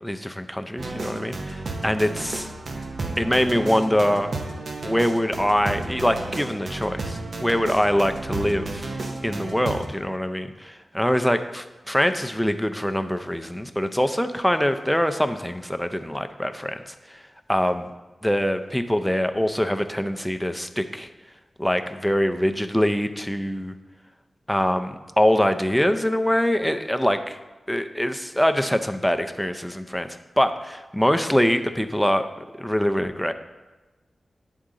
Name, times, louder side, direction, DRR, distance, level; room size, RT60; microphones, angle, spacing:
voice 1, 0.0-2.5 3.2-4.3 4.8-16.8 17.1-17.2 17.5-17.9 18.2-21.1 21.6-23.7 24.5-27.4 27.7-30.1 30.4-33.3, equal, 5° left, 8 dB, 0.4 m, -24 dB
sound 1, 0.8-9.9, right 2 dB, 65° right, 0.7 m, -32 dB
9.6 x 3.6 x 3.8 m, 1.2 s
wide cardioid pair, 80°, 0 cm